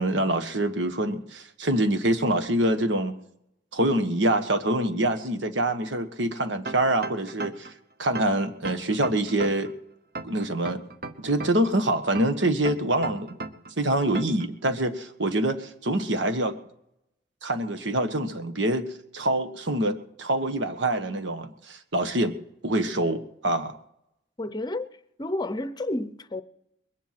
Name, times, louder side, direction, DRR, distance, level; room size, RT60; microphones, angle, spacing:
voice 1, 0.0-3.2 3.7-7.7 8.0-9.7 10.2-10.8 11.2-13.4 13.8-16.6 17.4-18.9 19.1-22.3 22.6-23.8, right 1 dB, 85° right, 1.4 m, -25 dB
Summertime Stab, 6.7-7.7 8.2-9.7 10.2-11.7 12.2-13.7 14.2-14.5, right 3 dB, 50° right, 1.0 m, -35 dB
voice 2, 24.4-24.9 25.2-26.4, left 1 dB, 20° left, 0.7 m, -30 dB
22.0 x 10.5 x 5.9 m
head